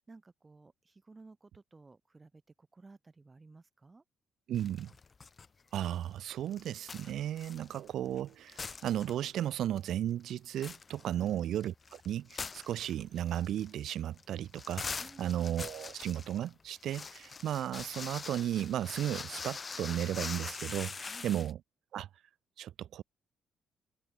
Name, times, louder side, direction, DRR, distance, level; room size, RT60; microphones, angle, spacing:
voice 1, 0.0-4.0 11.1-11.5 15.0-15.6 21.0-21.4, right 3 dB, 25° right, 1.4 m, -56 dB
sound 1, 4.5-5.5 5.8-8.2 8.5-9.5 9.8-9.9 10.3-21.5, left 4 dB, 35° left, 0.3 m, -43 dB
voice 2, 4.5-4.9 5.7-21.6 21.9-22.1 22.6-23.0, right 11 dB, 75° right, 0.5 m, -35 dB
cardioid pair, 90°, 0 cm